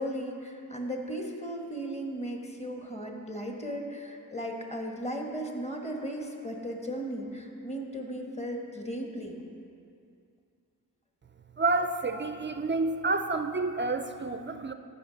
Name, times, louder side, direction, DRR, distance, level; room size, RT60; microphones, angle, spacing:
voice 1, 0.0-9.4, equal, 15° left, 1 dB, 1.4 m, -36 dB
voice 2, 11.6-14.7, right 3 dB, 30° right, 8 dB, 0.4 m, -29 dB
13.5 x 5.7 x 4.0 m, 2.5 s
cardioid pair, 50°, 38 cm